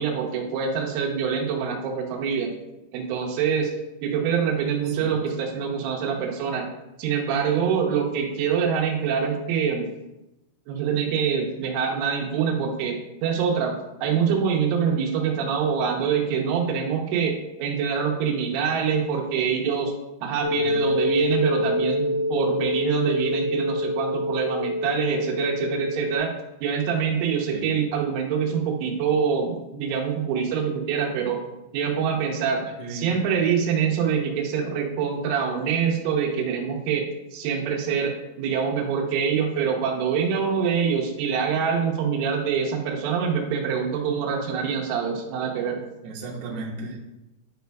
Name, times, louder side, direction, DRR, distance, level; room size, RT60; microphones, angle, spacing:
voice 1, 0.0-2.5 2.9-3.7 4.0-6.7 7.0-9.9 10.7-13.7 14.0-19.9 20.2-26.3 26.6-31.4 31.7-45.8, right 6 dB, 90° right, 0 dB, 3.5 m, -25 dB
sound 1, 20.4-26.2, left 1 dB, 70° left, 4.9 m, -26 dB
voice 2, 32.8-33.1 46.0-47.0, right 3 dB, 70° right, -4 dB, 3.0 m, -35 dB
11.0 x 5.2 x 2.3 m, 0.94 s
omnidirectional pair, 5.5 m